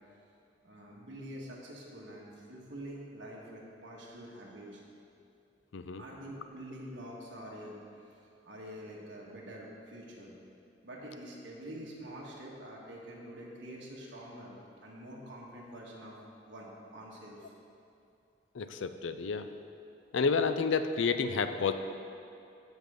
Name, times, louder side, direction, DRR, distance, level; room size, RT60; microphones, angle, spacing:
voice 1, 0.6-4.8 6.0-8.2 8.4-10.3 10.8-16.1 16.5-17.5, right 1 dB, 65° right, -3 dB, 1.7 m, -46 dB
voice 2, 18.5-19.5 20.1-21.7, left 5 dB, 75° left, 9 dB, 0.5 m, -30 dB
15.5 x 5.3 x 3.7 m, 2.6 s
head